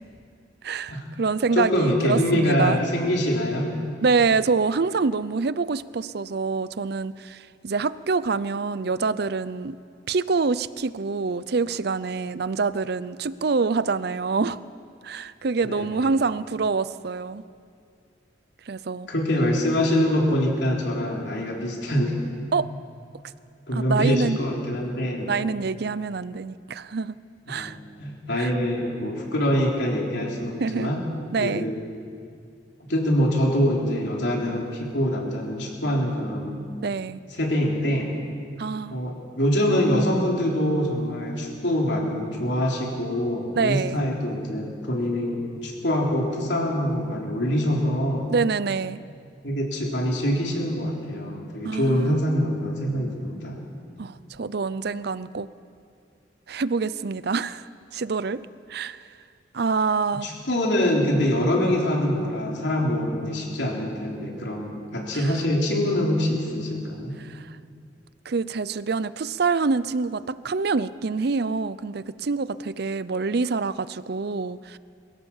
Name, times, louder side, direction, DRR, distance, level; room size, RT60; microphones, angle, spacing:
voice 1, 0.6-2.8 4.0-9.8 10.1-14.6 15.0-17.4 18.7-19.1 22.5-22.7 23.7-24.4 25.3-27.2 27.5-27.8 28.4-28.5 30.6-30.9 31.3-31.7 36.8-37.2 38.6-39.0 43.5-44.0 48.3-49.0 51.6-52.2 54.0-55.5 56.5-57.6 57.9-58.4 58.7-59.0 59.5-60.3 65.1-65.3 67.2-67.5 68.3-74.8, right 4 dB, 55° right, 17 dB, 0.5 m, -26 dB
voice 2, 1.5-3.7 15.6-16.1 19.1-22.1 23.7-25.3 27.5-31.0 31.4-31.8 32.9-36.6 37.4-38.1 38.9-48.3 49.4-53.6 60.2-67.2, equal, 65° left, -1 dB, 3.7 m, -24 dB
22.5 x 16.0 x 7.3 m, 2.3 s
head